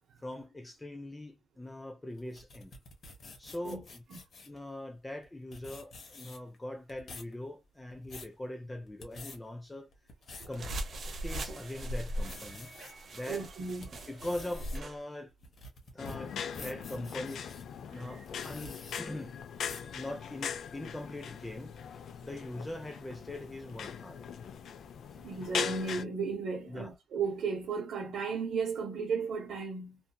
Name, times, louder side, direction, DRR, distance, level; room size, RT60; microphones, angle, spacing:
voice 1, 0.2-2.7 3.4-4.0 4.5-9.9 10.5-10.7 11.2-12.7 13.1-13.5 14.1-15.3 15.9-17.5 17.9-19.4 19.9-21.8 22.2-24.2 25.1-25.2 26.7-27.0, left 1 dB, 10° left, 0.4 m, -41 dB
sound 1, 2.2-4.6 5.2-5.3 5.5-6.6 6.9-7.3 7.8-8.3 8.9-9.4 9.9-10.6 11.1-11.2 11.6-12.9 13.4-17.6 18.2-19.0 19.6-19.9, left 2 dB, 45° left, 0.9 m, -49 dB
sound 2, 10.5-15.0, right 1 dB, 45° right, 0.7 m, -39 dB
voice 2, 12.7-13.9 19.8-19.9 25.2-30.0, right 5 dB, 80° right, 0.7 m, -35 dB
sound 3, 16.0-26.0, left 7 dB, 70° left, 0.4 m, -40 dB
2.7 x 2.6 x 2.2 m
wide cardioid pair, 145°, 0 cm